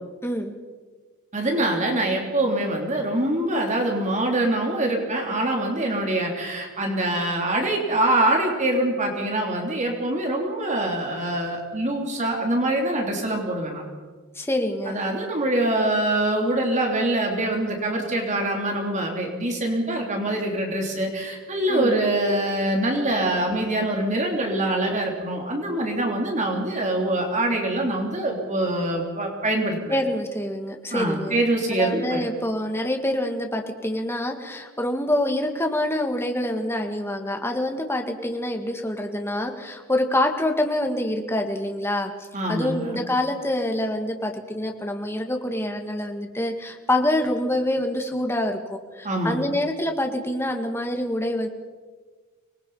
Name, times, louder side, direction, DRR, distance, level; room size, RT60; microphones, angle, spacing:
voice 1, 0.2-0.5 14.4-15.0 21.7-21.9 29.9-31.4 31.7-42.1 42.5-51.5, left 1 dB, 10° left, 3 dB, 2.0 m, -26 dB
voice 2, 1.3-13.8 14.9-29.9 30.9-32.2 42.3-43.0 49.0-49.4, right 1 dB, 35° right, 1 dB, 3.3 m, -24 dB
25.5 x 20.5 x 5.7 m, 1.4 s
head